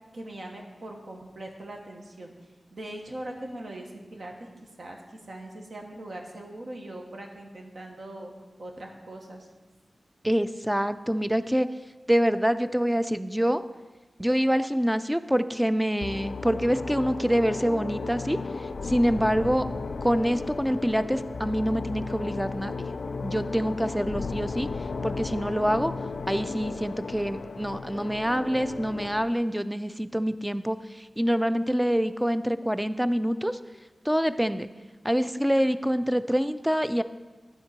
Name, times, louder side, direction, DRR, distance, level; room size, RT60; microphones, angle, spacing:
voice 1, 0.1-2.3 2.7-4.5 4.8-8.3 8.6-9.5, right 1 dB, 70° right, 1 dB, 1.1 m, -41 dB
voice 2, 10.2-11.7 12.1-13.6 14.2-18.4 18.8-19.7 20.0-22.7 23.2-24.7 25.0-25.9 26.3-33.6 34.1-34.7 35.0-37.0, equal, 5° right, 12 dB, 0.3 m, -26 dB
sound 1, 16.0-29.3, left 4 dB, 80° left, 0.4 m, -34 dB
9.9 x 3.7 x 6.6 m, 1.2 s
wide cardioid pair, 65°, 0 cm